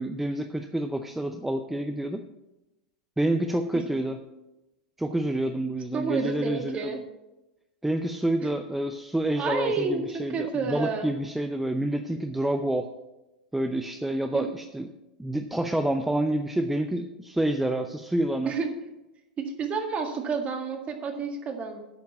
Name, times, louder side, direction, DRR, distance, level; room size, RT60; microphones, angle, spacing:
voice 1, 0.0-2.2 3.2-4.2 5.0-7.0 7.8-12.9 13.5-14.9 15.2-18.5, right 1 dB, 5° right, 6 dB, 0.6 m, -28 dB
voice 2, 5.9-7.0 9.4-11.1 14.3-14.5 18.5-18.7 19.4-21.8, right 4 dB, 30° right, 4 dB, 1.8 m, -30 dB
9.0 x 5.4 x 8.0 m, 0.99 s
hypercardioid pair, 95°, 4 cm